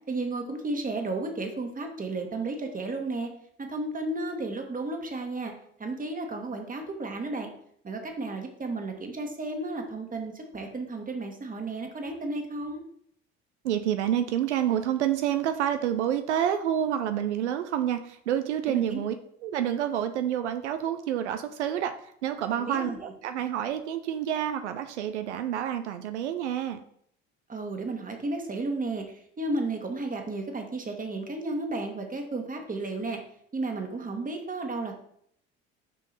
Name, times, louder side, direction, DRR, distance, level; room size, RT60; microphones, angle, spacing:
voice 1, 0.1-3.3 3.6-5.5 5.8-7.5 7.8-12.8 18.7-19.0 22.6-23.0 27.5-29.0 29.4-33.2 33.5-34.9, right 2 dB, 25° right, 4 dB, 1.6 m, -33 dB
voice 2, 13.6-19.1 19.4-26.8, right 10 dB, 85° right, 9 dB, 0.5 m, -28 dB
6.4 x 5.4 x 4.1 m, 0.68 s
hypercardioid pair, 60°, 34 cm